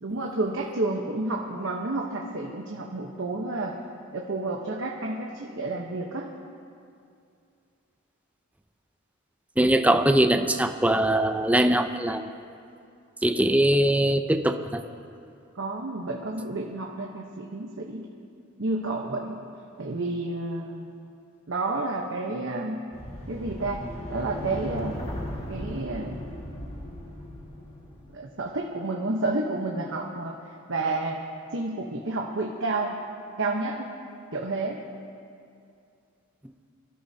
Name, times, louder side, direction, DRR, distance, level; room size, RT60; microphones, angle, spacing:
voice 1, 0.0-3.8 4.1-6.3 15.5-18.1 18.6-19.4 19.8-20.9 21.5-22.8 23.3-23.8 24.1-25.0 25.5-26.2 28.1-30.4 30.7-31.2 31.5-33.0 33.4-33.9 34.3-34.8, right 2 dB, 65° right, 0 dB, 1.0 m, -30 dB
voice 2, 9.6-12.3 13.2-14.8, right 1 dB, 5° right, 7 dB, 0.6 m, -22 dB
sound 1, 22.9-28.1, left 1 dB, 30° left, 1.9 m, -37 dB
24.0 x 13.5 x 2.8 m, 2.5 s
head